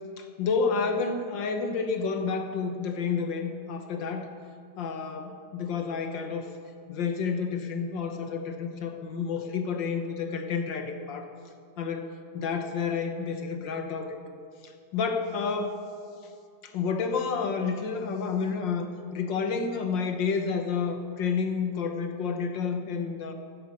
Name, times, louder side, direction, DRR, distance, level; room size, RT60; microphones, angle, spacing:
voice 1, 0.2-4.3 4.8-6.5 6.9-11.3 11.8-12.1 12.3-14.1 14.9-15.8 16.6-23.3, left 5 dB, 70° left, 6 dB, 1.7 m, -30 dB
15.0 x 9.7 x 6.5 m, 2.3 s
omnidirectional pair, 2.1 m